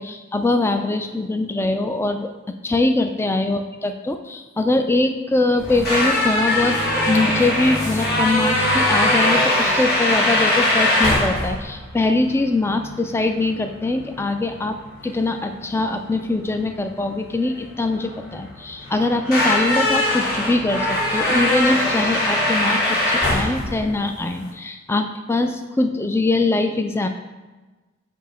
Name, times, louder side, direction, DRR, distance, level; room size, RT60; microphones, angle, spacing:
voice 1, 0.0-6.8 7.1-14.8 15.0-27.1, left 2 dB, 10° left, 6 dB, 0.3 m, -22 dB
sound 1, 5.6-24.5, left 1 dB, 45° left, 1.4 m, -21 dB
6.1 x 2.8 x 5.6 m, 1.2 s
head